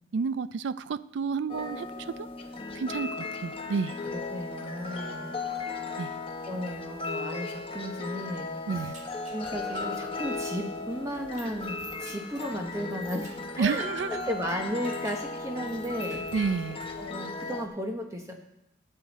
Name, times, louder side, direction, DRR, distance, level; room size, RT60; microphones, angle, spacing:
voice 1, 0.1-2.3 2.7-4.0 6.0-6.1 8.7-9.0 13.6-14.2 16.3-16.8, right 5 dB, 85° right, 17 dB, 0.4 m, -30 dB
sound 1, 1.5-17.7, left 3 dB, 30° left, 0.8 m, -36 dB
voice 2, 4.1-5.4 6.5-8.9 9.3-13.9 14.2-16.2 17.0-18.4, equal, 15° right, 2 dB, 1.0 m, -35 dB
sound 2, 8.8-17.1, right 1 dB, 40° right, 2.1 m, -52 dB
12.5 x 7.7 x 4.1 m, 0.84 s
head